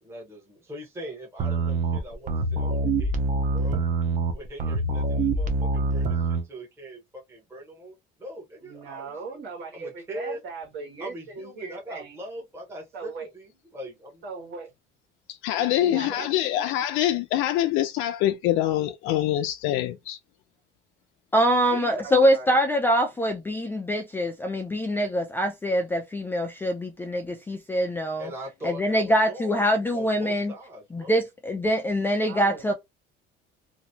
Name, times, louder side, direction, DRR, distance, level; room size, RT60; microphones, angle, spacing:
voice 1, 0.0-3.1 3.5-3.8 4.3-9.2 9.7-10.4 11.0-14.2 28.2-29.7 29.9-31.2, equal, 10° right, 1.0 m, -41 dB
sound 1, 1.4-6.4, right 3 dB, 40° right, 0.6 m, -25 dB
voice 2, 8.6-12.2 12.9-13.3 14.2-14.7 15.5-16.7 21.7-22.6 32.2-32.7, right 4 dB, 60° right, 1.6 m, -39 dB
voice 3, 15.3-20.2, left 13 dB, 85° left, 0.4 m, -25 dB
voice 4, 21.3-28.3 28.6-30.5 30.9-32.7, equal, 10° left, 0.3 m, -24 dB
2.9 x 2.6 x 2.7 m
cardioid pair, 170°, 21 cm